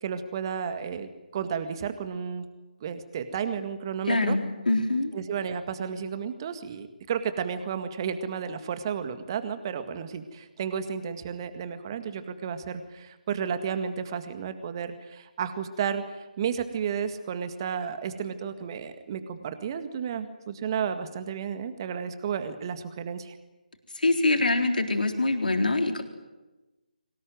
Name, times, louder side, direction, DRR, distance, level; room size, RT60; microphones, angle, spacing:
voice 1, 0.0-2.4 2.8-4.4 5.1-23.4, right 7 dB, 30° right, 10 dB, 1.9 m, -32 dB
voice 2, 4.1-5.1 24.0-26.0, left 2 dB, 70° left, 5 dB, 3.9 m, -24 dB
23.5 x 19.0 x 9.3 m, 1.1 s
figure-of-eight pair, 155°, 5 cm